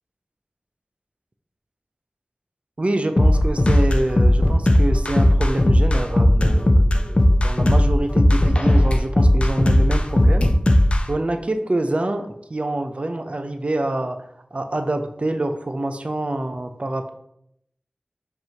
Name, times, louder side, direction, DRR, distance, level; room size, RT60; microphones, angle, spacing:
voice 1, 2.8-10.5 11.1-14.2 14.5-17.1, right 1 dB, 45° right, 7 dB, 0.5 m, -26 dB
sound 1, 3.2-11.0, left 1 dB, 45° left, 0.5 m, -16 dB
5.2 x 3.0 x 2.9 m, 0.75 s
wide cardioid pair, 45°, 3 cm